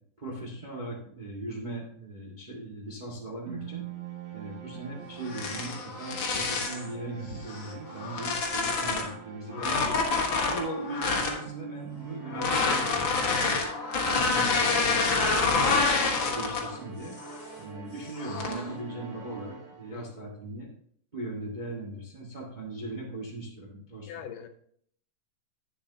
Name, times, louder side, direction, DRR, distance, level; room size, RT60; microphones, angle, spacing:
voice 1, 0.2-3.8 4.3-10.0 10.5-13.6 14.0-15.8 16.3-17.2 17.6-20.7 21.1-24.1, right 2 dB, 25° right, -2 dB, 1.0 m, -39 dB
sound 1, 3.5-20.2, right 6 dB, 65° right, 2.7 m, -44 dB
sound 2, 5.2-6.9 7.5-9.1 9.5-11.4 12.3-16.8 17.2-17.5 18.2-18.7, left 4 dB, 50° left, 1.6 m, -27 dB
voice 2, 9.5-10.0 19.9-20.3 24.1-24.5, left 8 dB, 80° left, 7 dB, 2.5 m, -43 dB
11.0 x 8.5 x 2.9 m, 0.63 s
omnidirectional pair, 3.8 m